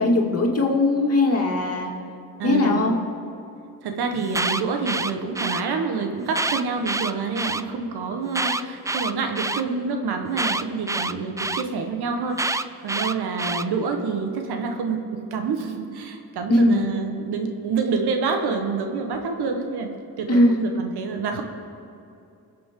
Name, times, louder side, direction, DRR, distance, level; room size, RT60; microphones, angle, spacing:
voice 1, 0.0-1.9 2.4-3.0 16.5-16.8 20.3-20.8, left 2 dB, 40° left, -1 dB, 2.6 m, -20 dB
voice 2, 2.4-2.8 3.8-12.4 12.8-15.0 15.3-19.9 20.2-21.4, right 4 dB, 75° right, 5 dB, 1.4 m, -27 dB
Alarm, 4.2-5.6 6.3-7.6 8.3-9.6 10.4-11.6 12.4-13.6, right 2 dB, 10° right, 0.4 m, -26 dB
21.5 x 7.6 x 3.8 m, 2.7 s
supercardioid pair, 60°, 39 cm